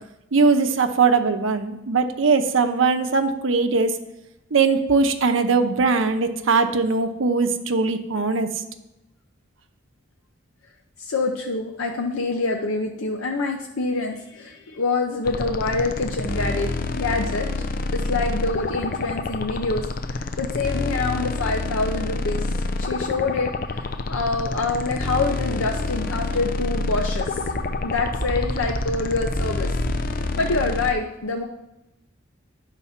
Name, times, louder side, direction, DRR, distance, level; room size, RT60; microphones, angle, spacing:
voice 1, 0.3-3.9 4.5-8.5, right 4 dB, 75° right, 7 dB, 0.7 m, -20 dB
voice 2, 11.0-17.5 17.9-27.6 27.8-29.7 30.4-31.5, left 3 dB, 85° left, 2 dB, 0.7 m, -26 dB
sound 1, 15.3-30.9, left 3 dB, 45° left, 0.4 m, -28 dB
sound 2, 25.4-30.1, right 1 dB, 10° left, 1.7 m, -33 dB
10.0 x 4.1 x 5.7 m, 0.91 s
head